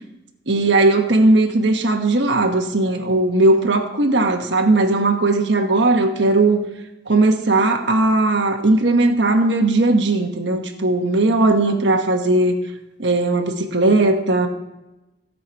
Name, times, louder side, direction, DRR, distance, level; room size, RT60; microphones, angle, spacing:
voice 1, 0.5-6.6 7.1-12.5 13.0-14.5, right 2 dB, 65° right, 4 dB, 1.3 m, -17 dB
17.0 x 5.7 x 4.7 m, 0.98 s
head